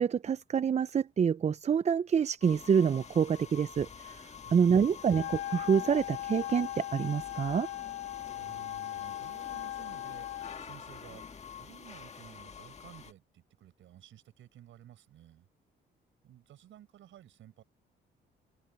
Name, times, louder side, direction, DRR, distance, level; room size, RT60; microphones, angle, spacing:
voice 1, 0.0-4.2 4.5-7.7, right 7 dB, 35° right, 0.5 m, -27 dB
sound 1, 2.4-13.1, left 7 dB, 35° left, 1.7 m, -47 dB
Wind instrument woodwind instrument, 5.0-10.6, left 14 dB, 75° left, 1.6 m, -39 dB
voice 2, 8.3-15.5 16.2-17.6, right 12 dB, 80° right, 6.3 m, -54 dB
open air
cardioid pair, 90°, 20 cm